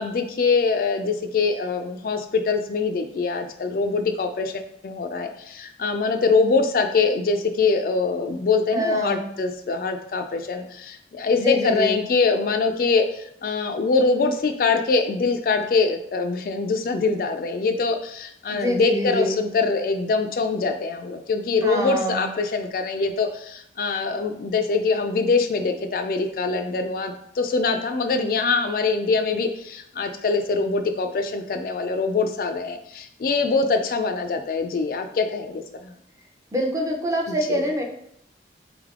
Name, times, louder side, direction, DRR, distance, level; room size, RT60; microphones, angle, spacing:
voice 1, 0.0-35.9 37.3-37.7, left 4 dB, 55° left, 6 dB, 0.3 m, -23 dB
voice 2, 8.7-9.2 11.3-12.0 18.5-19.3 21.6-22.2 36.5-37.8, equal, 20° right, 1 dB, 0.6 m, -25 dB
3.5 x 3.3 x 3.6 m, 0.70 s
head